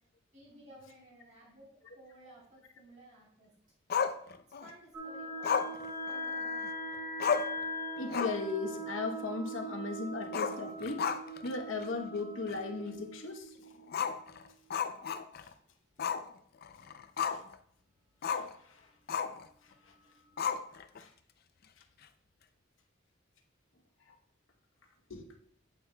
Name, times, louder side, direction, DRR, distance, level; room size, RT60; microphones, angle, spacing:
voice 1, 0.3-1.7 1.9-3.5 4.6-6.0, right 1 dB, 40° right, 3.2 m, -56 dB
Growling, 3.9-4.7 5.4-6.7 6.9-7.0 7.2-7.6 8.0-8.5 8.8-8.9 10.2-11.5 11.8-11.9 12.5-12.6 13.9-15.5 16.0-16.3 16.6-17.6 18.2-18.5 19.1-19.5 20.4-21.0, left 6 dB, 50° left, 0.4 m, -33 dB
sound 1, 4.9-14.5, equal, 15° right, 2.7 m, -41 dB
voice 2, 8.0-11.1 11.4-13.6 17.3-17.4 18.2-18.9 21.0-21.1 25.1-25.3, left 3 dB, 75° left, 0.9 m, -37 dB
8.8 x 8.3 x 2.2 m
head